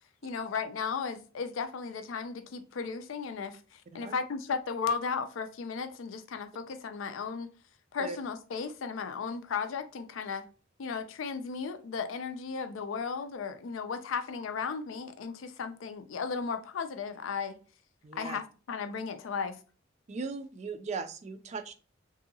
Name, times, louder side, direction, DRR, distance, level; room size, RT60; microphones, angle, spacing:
voice 1, 0.2-7.5 7.9-10.5 10.8-17.6 18.1-19.6, left 5 dB, 80° left, 0.4 m, -35 dB
voice 2, 18.0-18.4 20.1-21.7, right 4 dB, 35° right, 0.3 m, -38 dB
2.7 x 2.7 x 2.6 m
head